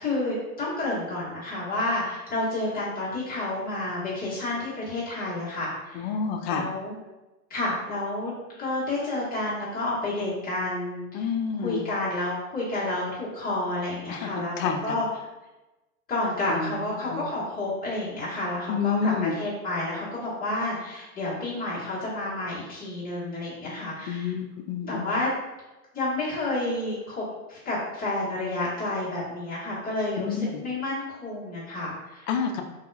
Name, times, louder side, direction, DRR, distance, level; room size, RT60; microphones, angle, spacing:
voice 1, 0.0-6.1 6.5-6.9 7.5-11.3 11.6-15.1 16.1-24.3 24.9-25.3 25.9-32.3, left 2 dB, 20° left, -9 dB, 1.5 m, -30 dB
voice 2, 6.0-6.7 11.1-11.8 14.1-14.3 14.6-14.9 16.5-16.7 17.1-17.2 18.7-19.3 24.1-25.0 30.2-30.6 32.3-32.6, left 6 dB, 50° left, 4 dB, 0.5 m, -28 dB
3.8 x 2.8 x 2.3 m, 1.1 s
hypercardioid pair, 120°, 45 cm